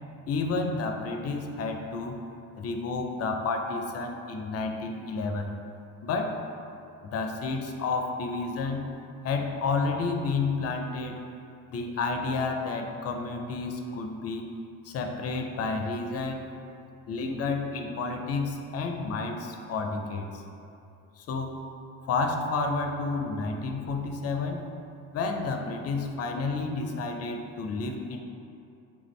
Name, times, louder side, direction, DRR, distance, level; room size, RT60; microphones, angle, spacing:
voice 1, 0.3-2.2 2.6-5.5 6.0-6.4 7.0-8.9 9.2-11.2 11.7-14.5 14.8-16.5 17.1-20.4 21.2-21.6 22.1-24.6 25.1-28.2, left 3 dB, 40° left, 4 dB, 0.4 m, -30 dB
3.6 x 2.5 x 3.1 m, 2.6 s
hypercardioid pair, 65°, 41 cm